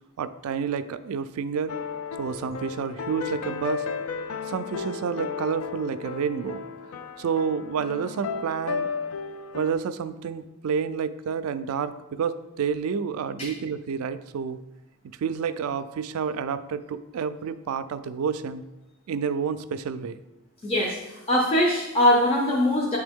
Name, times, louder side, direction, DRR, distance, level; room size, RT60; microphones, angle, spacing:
voice 1, 0.2-1.8 2.2-3.9 4.5-6.6 7.2-8.9 9.5-14.6 15.2-18.6 19.1-20.2, right 6 dB, 75° right, 13 dB, 0.3 m, -29 dB
sound 1, 1.7-9.7, left 5 dB, 80° left, 0.4 m, -34 dB
voice 2, 20.6-21.0 21.3-23.0, left 1 dB, 25° left, -3 dB, 0.6 m, -21 dB
8.8 x 3.4 x 3.5 m, 1.0 s
head